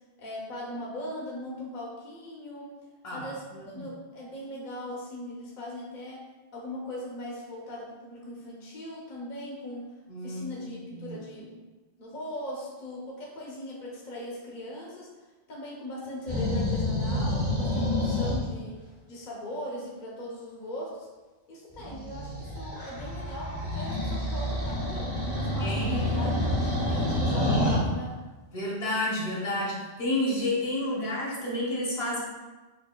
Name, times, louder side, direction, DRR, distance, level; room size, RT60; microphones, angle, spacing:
voice 1, 0.2-2.7 3.1-9.9 10.2-11.6 12.0-18.8 19.1-21.1 21.5-28.2, left 1 dB, 50° left, -4 dB, 0.9 m, -39 dB
voice 2, 10.1-10.5 10.9-11.2 21.8-21.9 25.6-26.5 28.5-32.2, left 1 dB, 70° left, -5 dB, 1.2 m, -30 dB
sound 1, 16.3-18.4 21.8-27.8, left 1 dB, 40° right, 1.1 m, -28 dB
5.5 x 2.6 x 2.2 m, 1.2 s
omnidirectional pair, 1.1 m